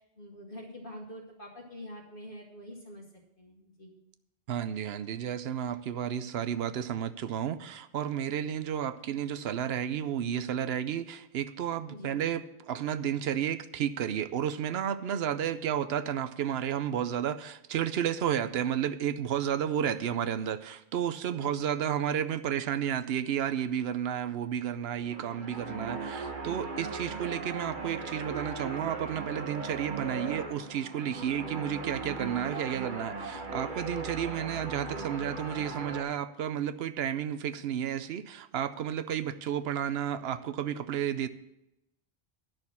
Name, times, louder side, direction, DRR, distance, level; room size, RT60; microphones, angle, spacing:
voice 1, 0.2-3.0 3.4-4.0 11.9-12.2 21.3-21.7 31.1-31.5, equal, 55° left, -3 dB, 1.4 m, -45 dB
voice 2, 4.5-41.3, right 9 dB, 70° right, 13 dB, 0.8 m, -32 dB
sound 1, 25.0-36.0, right 3 dB, 50° right, 1.3 m, -38 dB
10.5 x 6.2 x 7.1 m, 0.88 s
omnidirectional pair, 1.1 m